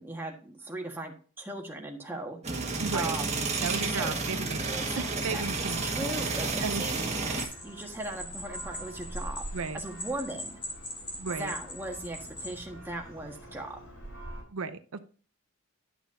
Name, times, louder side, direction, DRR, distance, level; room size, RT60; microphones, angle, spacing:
voice 1, 0.0-2.6 2.9-3.5 3.8-4.2 4.6-9.4 9.7-10.6 11.3-13.8, right 1 dB, 10° right, 1 dB, 1.4 m, -38 dB
sound 1, 2.4-7.4, right 3 dB, 30° right, 1.5 m, -31 dB
voice 2, 2.8-3.2 3.6-5.8 6.3-6.8 9.5-9.8 11.2-11.5 14.5-15.0, right 4 dB, 75° right, 10 dB, 0.6 m, -35 dB
Church bell, 4.7-14.4, right 1 dB, 65° left, 4.3 m, -45 dB
sound 2, 7.4-12.6, left 1 dB, 25° left, 2.3 m, -41 dB
11.0 x 6.1 x 2.6 m, 0.41 s
head